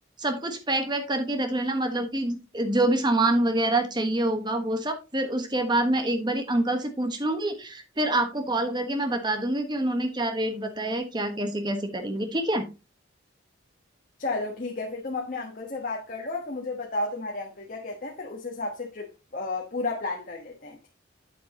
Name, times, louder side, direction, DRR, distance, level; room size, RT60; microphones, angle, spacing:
voice 1, 0.2-12.6, right 1 dB, 20° right, 1.3 m, -26 dB
voice 2, 14.2-20.9, left 3 dB, 45° left, 1.3 m, -33 dB
8.5 x 7.5 x 2.9 m
head